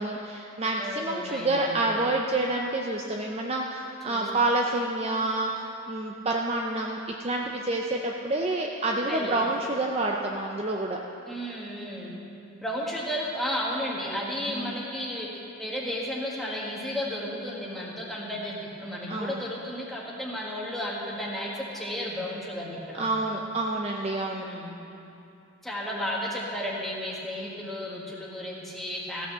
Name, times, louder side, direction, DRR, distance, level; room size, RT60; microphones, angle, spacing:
voice 1, 0.0-11.0 14.5-14.8 19.1-19.5 22.9-24.5, right 2 dB, 30° right, 0 dB, 0.5 m, -28 dB
voice 2, 0.8-1.8 4.0-4.3 9.0-9.4 11.3-12.3 12.6-23.0 24.3-24.7 25.6-29.3, equal, ahead, -4 dB, 1.5 m, -33 dB
15.0 x 6.3 x 6.8 m, 2.8 s
head